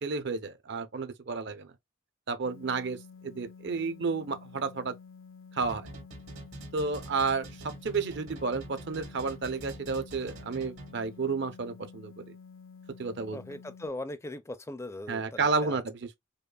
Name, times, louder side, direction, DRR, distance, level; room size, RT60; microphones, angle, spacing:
voice 1, 0.0-1.7 2.3-3.0 3.2-4.9 5.5-5.9 6.7-12.2 13.0-13.4 15.1-16.2, right 4 dB, 60° right, 0.6 m, -31 dB
sound 1, 2.4-13.9, left 5 dB, 70° left, 0.5 m, -51 dB
sound 2, 5.6-11.1, right 2 dB, 85° right, 2.1 m, -45 dB
voice 2, 13.3-15.8, left 1 dB, 15° left, 0.4 m, -39 dB
5.0 x 2.4 x 2.2 m
head